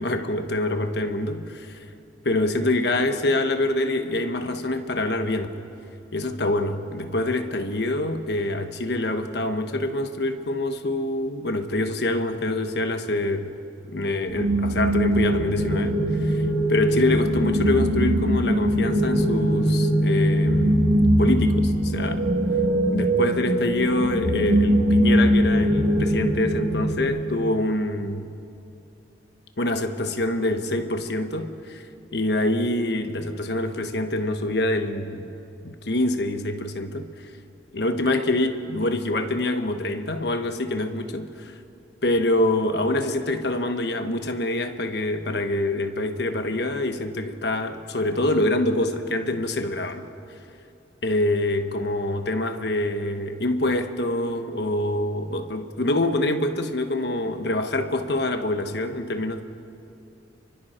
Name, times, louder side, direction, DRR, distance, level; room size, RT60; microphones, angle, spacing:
voice 1, 0.0-1.8 2.2-5.6 6.1-13.5 13.9-20.9 21.2-22.2 22.9-28.3 29.6-31.9 32.1-35.3 35.6-37.1 37.7-41.5 42.0-50.0 51.0-59.4, left 1 dB, 60° left, 1.3 m, -25 dB
sound 1, 14.3-27.0, right 1 dB, 85° right, 3.1 m, -21 dB
30.0 x 23.5 x 4.4 m
head